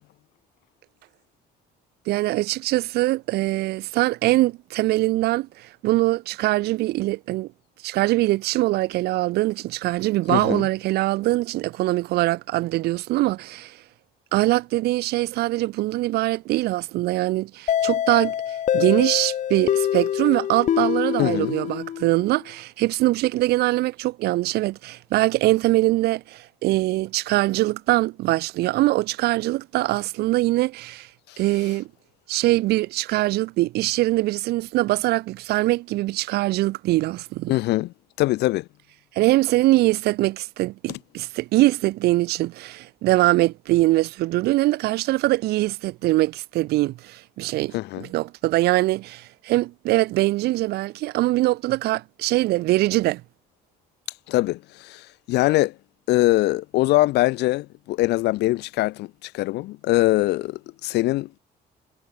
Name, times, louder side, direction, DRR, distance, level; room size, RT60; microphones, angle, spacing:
voice 1, 2.1-7.5 7.8-13.7 14.3-18.3 18.7-31.1 31.4-31.9 32.3-37.5 39.2-53.2, right 18 dB, 70° right, 0.4 m, -22 dB
voice 2, 10.3-10.7 21.2-21.6 31.3-31.4 37.5-38.7 40.9-41.0 47.7-48.1 54.3-55.7 56.1-61.4, left 18 dB, 85° left, 2.2 m, -23 dB
sound 1, 17.7-22.4, left 10 dB, 45° left, 0.7 m, -25 dB
cardioid pair, 110°, 17 cm